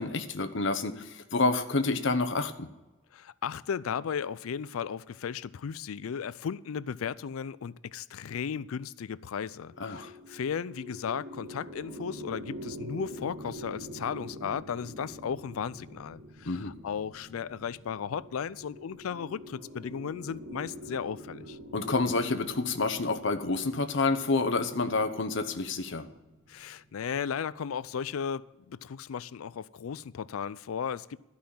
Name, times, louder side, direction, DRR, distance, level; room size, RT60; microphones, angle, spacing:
voice 1, 0.0-2.7 9.8-10.1 16.5-16.7 21.7-26.1, left 3 dB, 60° left, 0.9 m, -28 dB
voice 2, 3.1-21.6 26.5-31.2, left 7 dB, 90° left, 0.4 m, -35 dB
sound 1, 9.7-27.1, equal, 85° right, 1.7 m, -46 dB
13.0 x 5.7 x 8.5 m
head